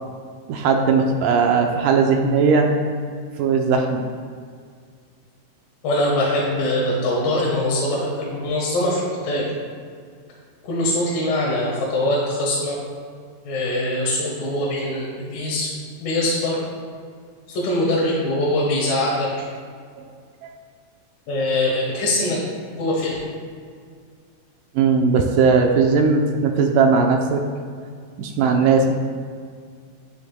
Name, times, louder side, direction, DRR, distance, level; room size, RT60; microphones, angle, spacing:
voice 1, 0.5-2.7 3.4-4.1 20.0-20.1 20.4-20.5 24.8-27.4 28.2-29.0, right 5 dB, 80° right, 3 dB, 2.2 m, -18 dB
voice 2, 5.8-9.4 10.6-12.8 13.5-15.7 16.0-16.6 17.5-19.3 21.3-22.4 22.7-23.2, left 1 dB, 80° left, -4 dB, 3.1 m, -22 dB
12.0 x 9.9 x 2.2 m, 2.1 s
omnidirectional pair, 4.0 m